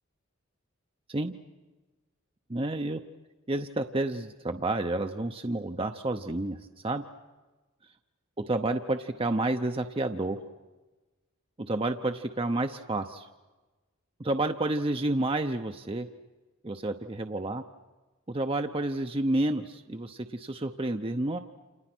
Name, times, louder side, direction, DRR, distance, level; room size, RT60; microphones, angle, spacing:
voice 1, 2.5-3.0 3.5-6.6 6.8-7.0 8.5-10.4 11.7-13.3 14.2-16.1 16.6-17.6 18.3-21.4, right 2 dB, 25° right, 6 dB, 0.8 m, -30 dB
30.0 x 28.0 x 6.2 m, 1.2 s
head